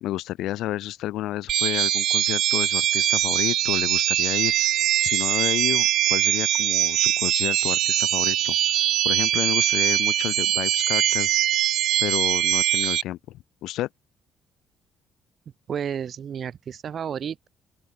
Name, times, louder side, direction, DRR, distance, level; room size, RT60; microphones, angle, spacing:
voice 1, 0.0-4.5 5.0-8.5 9.0-11.3 12.0-13.2 13.6-13.9, left 15 dB, 80° left, 1.2 m, -30 dB
sound 1, 1.5-13.0, right 12 dB, 70° right, 0.4 m, -22 dB
voice 2, 15.7-17.5, right 8 dB, 55° right, 1.3 m, -31 dB
open air
cardioid pair, 80°, 0 cm